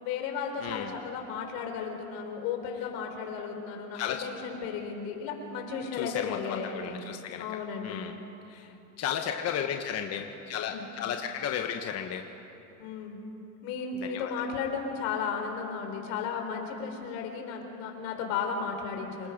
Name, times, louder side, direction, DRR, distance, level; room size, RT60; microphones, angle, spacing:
voice 1, 0.0-7.0 7.4-8.0 10.7-10.8 12.8-13.2 13.6-19.3, left 6 dB, 75° left, 3 dB, 4.1 m, -34 dB
voice 2, 0.6-1.0 3.9-4.2 5.9-8.2 8.5-12.3 13.9-14.5, left 8 dB, 35° left, 4 dB, 1.2 m, -34 dB
28.0 x 19.5 x 5.2 m, 2.8 s
supercardioid pair, 135°, 42 cm